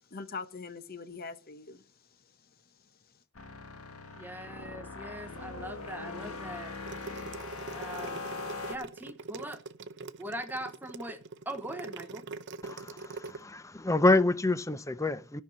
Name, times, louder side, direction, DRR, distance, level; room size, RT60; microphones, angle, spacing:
voice 1, 0.0-3.2, left 4 dB, 45° left, 0.9 m, -44 dB
sound 1, 3.3-8.8, left 3 dB, 85° left, 1.6 m, -41 dB
voice 2, 4.2-6.7 7.7-8.3 8.7-9.6 10.2-11.2 11.5-12.2, right 1 dB, 10° right, 0.9 m, -41 dB
sound 2, 6.7-13.4, right 3 dB, 55° right, 0.7 m, -42 dB
voice 3, 12.6-15.4, left 2 dB, 15° left, 0.5 m, -27 dB
14.5 x 5.7 x 7.7 m
head